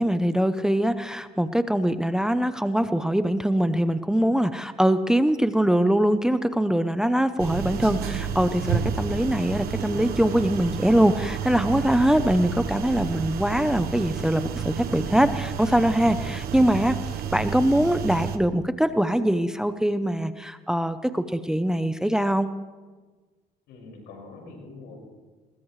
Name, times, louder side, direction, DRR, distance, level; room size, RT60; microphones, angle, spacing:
voice 1, 0.0-17.0 17.3-22.5, equal, 5° right, 11 dB, 0.7 m, -23 dB
sound 1, 7.4-18.4, right 7 dB, 65° right, 1.1 m, -31 dB
voice 2, 8.8-9.3 16.2-16.4 23.7-25.0, left 3 dB, 90° left, 0 dB, 5.6 m, -45 dB
21.0 x 20.5 x 3.2 m, 1.4 s
cardioid pair, 110°, 17 cm